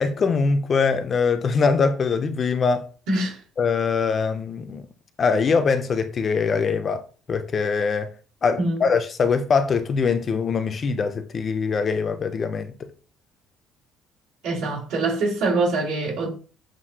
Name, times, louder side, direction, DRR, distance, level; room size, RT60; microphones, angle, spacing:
voice 1, 0.0-2.9 3.6-4.9 5.2-7.0 7.3-8.1 8.4-12.9, left 5 dB, 30° left, 0.5 m, -22 dB
voice 2, 3.1-3.4 8.6-8.8 14.4-16.3, right 2 dB, 80° right, 2.6 m, -24 dB
7.4 x 2.6 x 2.8 m
cardioid pair, 160°, 0 cm